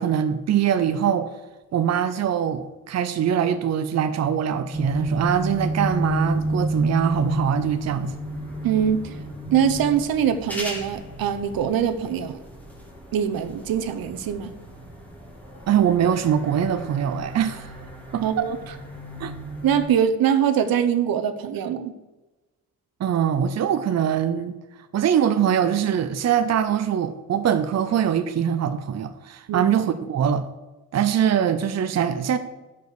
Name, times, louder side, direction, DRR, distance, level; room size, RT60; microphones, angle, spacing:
voice 1, 0.0-1.3 1.7-8.1 15.7-17.7 18.1-18.2 19.2-19.3 23.0-24.6 24.9-30.5 30.9-32.4, right 8 dB, 50° right, 0.7 m, -23 dB
sound 1, 4.7-19.9, right 1 dB, 5° left, 3.2 m, -32 dB
voice 2, 8.6-9.1 9.5-12.4 13.1-14.5 18.2-18.6 19.6-21.9 29.5-29.7, right 8 dB, 80° right, 0.9 m, -23 dB
10.5 x 5.3 x 6.7 m
cardioid pair, 115°, 35 cm